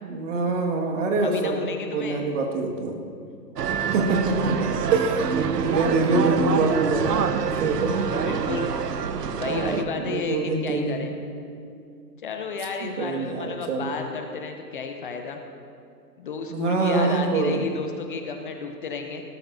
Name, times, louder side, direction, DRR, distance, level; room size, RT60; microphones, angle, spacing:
voice 1, 0.0-3.0 3.9-5.2 5.6-8.1 9.4-11.1 12.8-13.9 16.5-17.7, right 3 dB, 45° right, 1 dB, 1.9 m, -25 dB
voice 2, 1.2-2.2 7.9-8.7 9.4-11.1 12.2-15.4 16.2-19.2, left 5 dB, 30° left, 4 dB, 0.7 m, -32 dB
sound 1, 3.6-9.8, right 6 dB, 70° right, 1.0 m, -26 dB
19.0 x 13.5 x 2.7 m, 2.4 s
hypercardioid pair, 150°, 50 cm